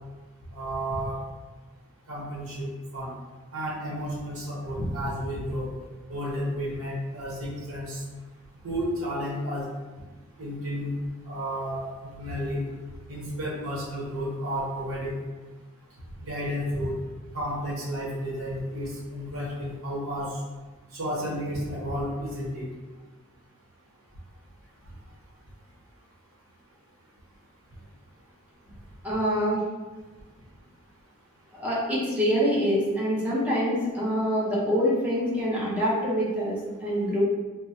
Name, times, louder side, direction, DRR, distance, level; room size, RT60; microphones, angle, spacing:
voice 1, 0.5-1.2 2.1-2.7 2.9-3.1 3.5-5.7 6.1-8.0 8.6-9.7 10.4-10.9 11.3-12.6 13.1-15.1 16.2-16.9 17.3-20.4 20.9-22.6, equal, 70° right, -5 dB, 0.9 m, -32 dB
voice 2, 29.0-29.6 31.5-37.2, equal, 5° right, -8 dB, 0.8 m, -25 dB
3.4 x 2.0 x 2.8 m, 1.2 s
head